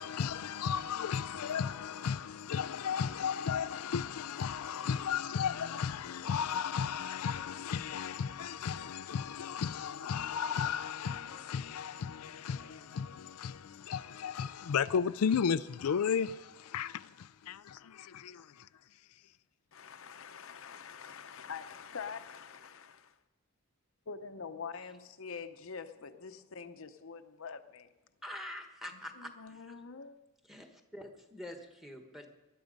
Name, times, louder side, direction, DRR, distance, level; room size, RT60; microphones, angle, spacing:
voice 1, 0.0-18.7, left 7 dB, 85° left, 0.4 m, -34 dB
sound 1, 1.0-2.1 2.4-3.2 3.8-8.0 8.5-11.9 12.2-13.0, right 2 dB, 75° right, 4.6 m, -66 dB
voice 2, 19.7-23.2 24.1-27.9 28.9-30.2, left 6 dB, 65° left, 0.8 m, -45 dB
voice 3, 28.2-29.6 30.5-32.3, left 1 dB, ahead, 1.4 m, -45 dB
19.5 x 11.5 x 5.3 m
head